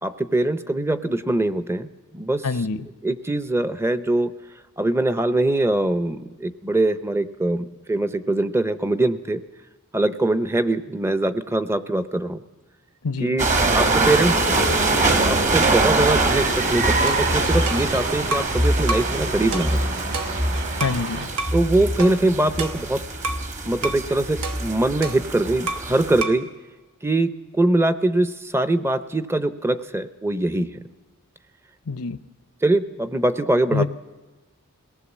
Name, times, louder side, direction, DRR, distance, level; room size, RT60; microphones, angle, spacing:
voice 1, 0.0-2.5 3.0-4.3 4.8-9.4 9.9-12.4 13.2-13.4 13.7-14.6 15.2-19.8 21.5-23.0 23.7-26.5 27.0-30.8 32.6-33.9, right 2 dB, 10° right, 12 dB, 0.6 m, -22 dB
voice 2, 2.4-2.9 13.0-13.3 20.8-21.3 31.9-32.2 33.7-33.9, left 4 dB, 90° left, 13 dB, 0.8 m, -25 dB
sound 1, 13.4-26.2, right 2 dB, 35° right, 1.2 m, -23 dB
sound 2, 14.0-21.3, right 4 dB, 50° right, 2.2 m, -30 dB
sound 3, 17.1-18.6 18.9-19.2 19.5-21.0 21.4-21.6 22.0-23.5 23.8-24.1 24.4-26.0 26.2-26.5, right 3 dB, 80° right, 1.1 m, -31 dB
21.5 x 18.5 x 7.2 m, 1.2 s
head